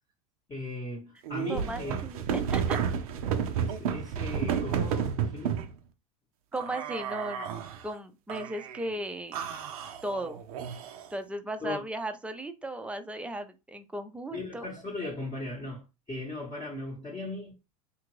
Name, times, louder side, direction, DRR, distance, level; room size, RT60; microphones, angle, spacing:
voice 1, 0.5-2.0 3.5-5.6 11.6-11.8 14.3-17.5, left 2 dB, 20° left, 0.8 m, -38 dB
sound 1, 1.2-5.7 6.5-7.8 8.3-8.9 9.3-11.1, right 7 dB, 75° right, 0.5 m, -31 dB
voice 2, 1.5-2.8 6.5-7.5 7.8-9.4 10.0-10.4 11.1-14.7, right 1 dB, 5° right, 0.4 m, -36 dB
2.8 x 2.4 x 3.0 m
hypercardioid pair, 100°, 19 cm